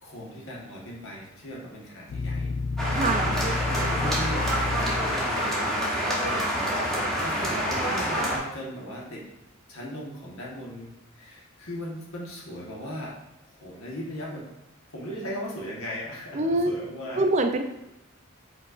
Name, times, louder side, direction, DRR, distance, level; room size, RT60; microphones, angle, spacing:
voice 1, 0.0-2.5 3.8-5.6 6.0-9.3 9.7-13.2 13.5-14.5 14.9-17.2, equal, 75° left, -3 dB, 1.3 m, -38 dB
sound 1, 2.1-5.5, left 3 dB, 55° left, 0.4 m, -30 dB
sound 2, 2.8-8.4, equal, ahead, 0.8 m, -27 dB
voice 2, 2.9-3.4 16.3-16.7 17.2-17.6, right 2 dB, 30° right, 6 dB, 0.4 m, -24 dB
5.3 x 4.0 x 2.4 m, 0.93 s
head